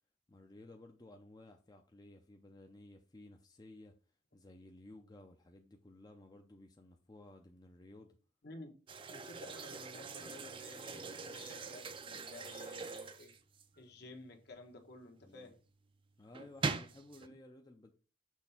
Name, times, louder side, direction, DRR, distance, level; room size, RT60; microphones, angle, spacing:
voice 1, 0.3-3.9 4.3-8.2 15.2-15.5 16.2-17.9, left 1 dB, 20° left, 0.5 m, -56 dB
sound 1, 8.9-13.8 16.3-17.3, right 4 dB, 30° right, 0.5 m, -42 dB
voice 2, 9.1-13.3 13.8-15.6 17.2-17.3, left 2 dB, 60° left, 1.3 m, -53 dB
6.3 x 3.3 x 5.7 m
head